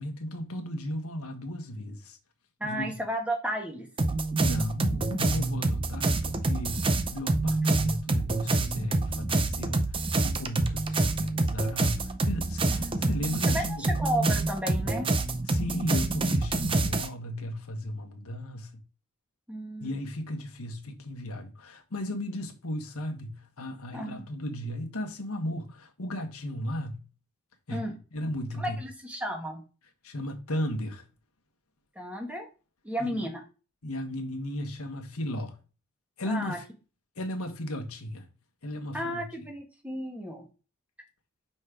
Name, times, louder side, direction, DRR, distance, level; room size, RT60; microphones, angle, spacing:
voice 1, 0.0-2.2 2.6-2.9 4.4-13.9 15.5-18.8 19.8-27.0 27.7-27.8 28.1-28.8 30.0-31.1 33.0-33.3 33.8-35.6 36.2-36.6 37.2-38.3 38.6-39.3, equal, 80° left, 1.4 m, -35 dB
voice 2, 2.6-3.9 12.7-15.1 19.5-19.9 23.9-24.2 27.7-27.9 28.6-29.6 31.9-32.5 32.8-33.4 36.2-36.6 38.9-40.4, equal, 5° right, 1.6 m, -33 dB
sound 1, 4.0-17.1, right 2 dB, 25° right, 0.6 m, -27 dB
5.6 x 4.2 x 4.9 m
head